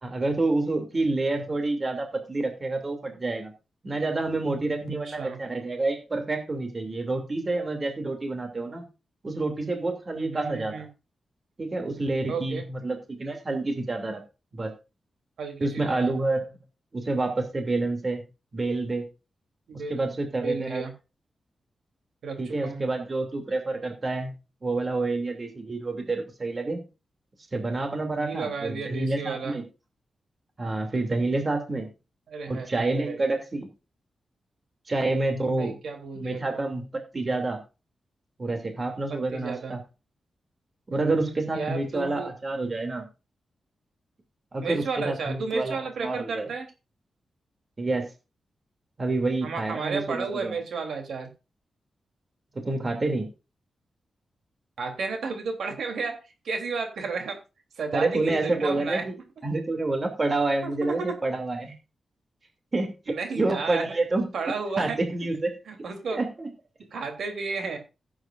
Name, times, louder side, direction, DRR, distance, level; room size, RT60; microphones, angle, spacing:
voice 1, 0.0-3.5 3.8-8.8 9.2-10.8 11.6-14.2 14.5-14.7 15.6-16.5 16.9-18.2 18.5-19.0 19.9-20.8 22.4-24.3 24.6-26.8 27.5-29.6 30.6-31.9 32.5-33.7 34.9-35.7 36.2-37.6 38.4-39.8 40.9-43.1 44.5-46.5 47.8-48.1 49.0-50.6 52.5-53.3 57.9-59.1 59.4-61.7 62.7-64.3 64.8-65.5 66.1-66.5, right 2 dB, 30° right, 4 dB, 2.7 m, -28 dB
voice 2, 5.0-5.4 10.1-10.9 12.3-12.6 15.4-16.1 19.7-20.1 20.4-20.9 22.2-22.8 28.1-29.6 32.3-33.2 35.4-36.7 39.1-39.8 41.5-42.3 44.6-46.7 49.4-51.3 54.8-56.2 56.4-57.4 57.8-59.0 60.6-61.1 63.1-63.9 64.3-65.0 65.7-66.2 66.9-67.8, right 4 dB, 85° right, 5 dB, 3.3 m, -33 dB
16.5 x 8.8 x 2.6 m, 0.29 s
wide cardioid pair, 140°, 0 cm